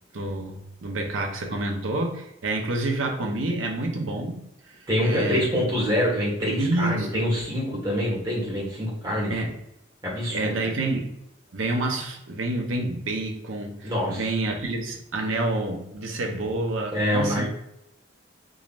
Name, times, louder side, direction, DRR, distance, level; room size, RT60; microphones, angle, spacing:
voice 1, 0.1-5.4 6.6-7.3 9.3-9.5 10.3-11.2 11.5-17.5, right 2 dB, 75° right, 2 dB, 0.7 m, -28 dB
voice 2, 4.9-9.3 10.0-10.6 13.8-14.3 16.9-17.5, equal, 20° right, -5 dB, 1.4 m, -25 dB
3.7 x 3.1 x 2.5 m, 0.81 s
head